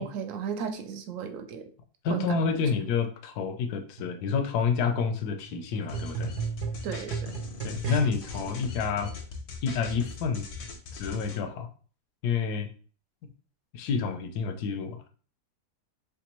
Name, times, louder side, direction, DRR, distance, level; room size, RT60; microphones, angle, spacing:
voice 1, 0.0-1.7 2.1-2.4 6.8-7.3, right 7 dB, 70° right, 7 dB, 0.8 m, -35 dB
voice 2, 2.0-6.3 7.6-9.1 9.6-10.5 10.9-11.7 12.2-12.7 13.2-13.3 13.7-15.1, left 5 dB, 80° left, 7 dB, 1.1 m, -29 dB
sound 1, 4.0-8.4 9.2-9.3, right 6 dB, 90° right, 1.2 m, -36 dB
sound 2, 5.9-11.4, left 4 dB, 60° left, 0.7 m, -40 dB
3.4 x 3.3 x 3.0 m, 0.41 s
omnidirectional pair, 1.7 m